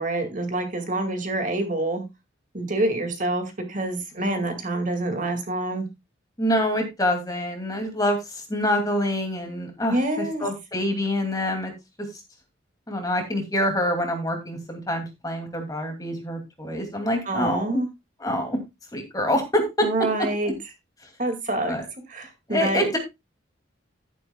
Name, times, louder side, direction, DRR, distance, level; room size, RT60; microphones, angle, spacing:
voice 1, 0.0-2.0 2.5-5.9 9.9-10.4 17.3-17.9 19.8-20.5 21.2-21.7 22.1-22.9, right 2 dB, 40° right, 2.3 m, -26 dB
voice 2, 4.2-4.5 6.4-11.7 12.9-17.8 18.2-18.6 18.9-19.9 21.6-21.9 22.5-23.0, left 1 dB, 20° left, 2.6 m, -26 dB
12.0 x 10.5 x 2.3 m
head